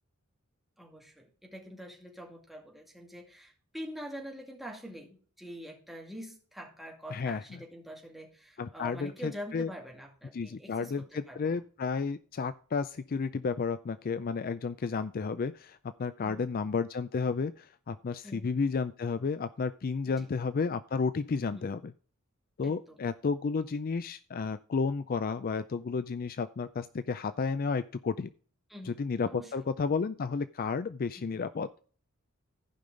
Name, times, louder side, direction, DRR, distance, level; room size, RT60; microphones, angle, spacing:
voice 1, 0.8-11.6 16.2-16.6 18.2-18.5 20.0-20.3 21.5-21.7 22.6-23.0 28.7-29.5 31.2-31.4, equal, ahead, 0 dB, 2.3 m, -45 dB
voice 2, 7.1-7.6 8.6-9.7 10.3-21.9 22.6-28.3 28.8-31.7, left 5 dB, 45° left, 13 dB, 0.4 m, -32 dB
15.0 x 5.4 x 3.8 m, 0.41 s
head